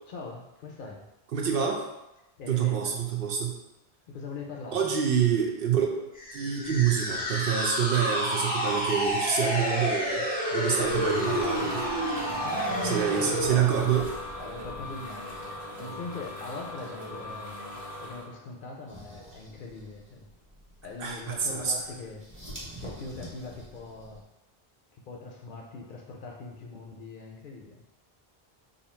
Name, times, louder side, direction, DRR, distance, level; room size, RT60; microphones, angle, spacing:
voice 1, 0.1-1.1 2.4-3.0 4.1-4.9 12.4-13.8 14.4-17.6 18.0-20.3 20.8-22.3 22.8-24.2 24.9-27.8, left 3 dB, 60° left, 1 dB, 0.7 m, -41 dB
voice 2, 1.3-1.8 2.5-3.6 4.7-5.9 6.3-11.9 12.2-12.3 12.8-14.1 21.0-21.7, right 8 dB, 65° right, 0 dB, 0.8 m, -27 dB
sound 1, 6.1-13.6, equal, 10° left, 0.5 m, -29 dB
sound 2, 10.3-18.2, left 1 dB, 40° right, 1.0 m, -39 dB
sound 3, 18.9-24.2, right 1 dB, 15° right, 0.8 m, -47 dB
2.8 x 2.6 x 4.2 m, 0.93 s
omnidirectional pair, 1.0 m